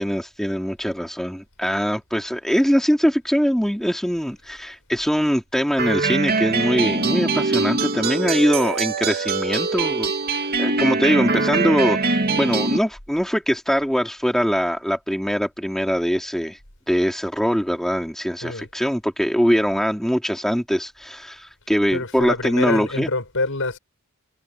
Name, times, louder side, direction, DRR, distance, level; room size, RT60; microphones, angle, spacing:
voice 1, 0.0-16.6 16.9-23.1, equal, ahead, 3.0 m, -22 dB
sound 1, 5.8-12.8, right 3 dB, 45° right, 2.5 m, -22 dB
voice 2, 21.9-23.8, left 3 dB, 60° left, 6.9 m, -26 dB
head